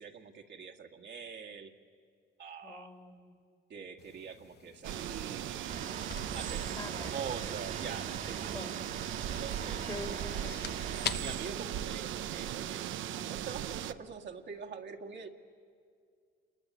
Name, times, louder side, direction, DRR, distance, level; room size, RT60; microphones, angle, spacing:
voice 1, 0.0-1.7 2.4-2.9 3.7-5.9 6.3-8.8 9.3-9.9 11.1-15.3, right 6 dB, 65° right, 1 dB, 2.0 m, -44 dB
voice 2, 2.6-3.4 6.8-7.2 8.5-8.8 9.9-10.7, left 2 dB, 20° left, 6 dB, 1.9 m, -45 dB
sound 1, 4.0-12.9, left 8 dB, 55° left, 0.9 m, -46 dB
sound 2, 4.8-13.9, right 11 dB, 80° right, 0.7 m, -38 dB
sound 3, 5.7-11.1, right 5 dB, 45° right, 1.7 m, -44 dB
28.0 x 22.0 x 9.8 m, 2.2 s
cardioid pair, 90°, 20 cm